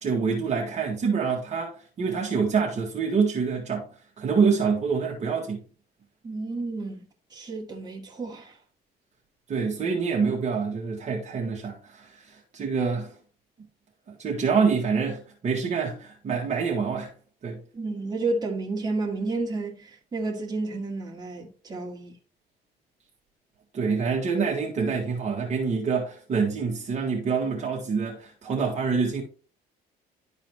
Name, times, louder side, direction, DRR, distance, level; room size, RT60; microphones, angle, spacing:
voice 1, 0.0-3.9 4.2-5.6 9.5-13.1 14.2-17.1 17.4-17.6 23.7-29.2, right 5 dB, 45° right, 1.7 m, -26 dB
voice 2, 6.2-7.0 7.3-8.6 17.7-22.2, right 3 dB, 25° right, 2.1 m, -31 dB
12.0 x 4.0 x 3.0 m
cardioid pair, 110°, 17 cm